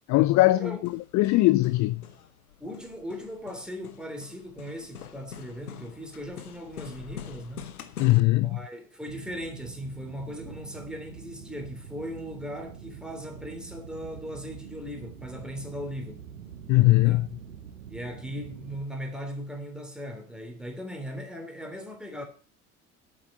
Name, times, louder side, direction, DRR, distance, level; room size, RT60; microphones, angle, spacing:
voice 1, 0.1-2.0 8.0-8.6 16.7-17.3, left 18 dB, 45° left, 0.5 m, -21 dB
Hammer, 0.6-8.2, left 8 dB, 85° left, 1.0 m, -45 dB
voice 2, 2.6-7.7 8.4-16.3 17.0-17.3 17.9-22.2, equal, ahead, 3.4 m, -38 dB
sound 1, 9.1-18.8, right 7 dB, 85° right, 1.1 m, -45 dB
8.7 x 7.5 x 6.8 m
hypercardioid pair, 65°, 43 cm